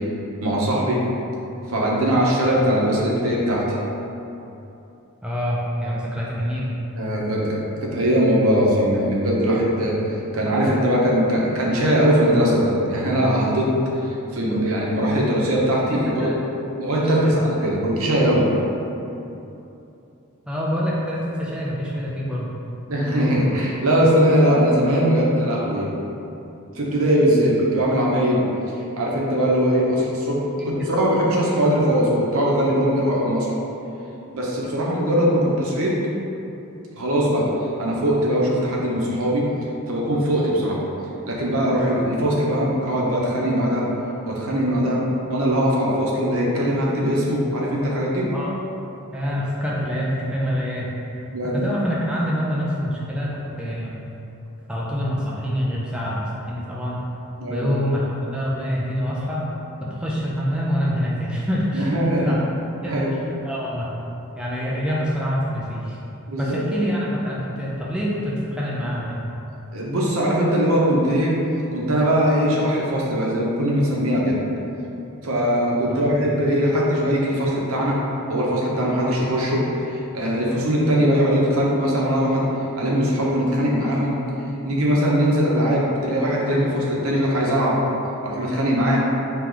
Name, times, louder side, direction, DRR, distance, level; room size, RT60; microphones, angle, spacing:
voice 1, 0.4-1.0 1.7-3.6 6.9-9.9 10.3-13.7 14.0-16.3 16.8-18.5 22.9-25.9 26.7-28.4 29.0-30.4 30.6-33.5 34.3-36.0 37.0-37.4 37.8-39.4 39.9-40.8 41.3-43.8 44.3-45.0 45.3-48.3 51.3-51.7 57.4-57.7 61.7-62.4 62.8-63.1 66.3-66.6 69.7-71.3 71.7-74.4 75.2-78.0 78.3-82.5 82.8-84.2 84.6-87.8 88.2-89.0, equal, 65° right, -4 dB, 0.8 m, -20 dB
voice 2, 5.2-6.7 16.2-16.5 17.0-17.4 20.5-22.5 30.6-30.7 48.3-48.5 49.1-50.9 51.5-54.0 54.7-57.0 57.5-59.4 59.8-61.9 62.2-62.4 62.8-63.2 63.4-63.9 64.3-66.0 66.4-69.2 75.9-76.1, equal, 5° right, -6 dB, 0.4 m, -26 dB
4.6 x 3.0 x 3.8 m, 2.9 s
head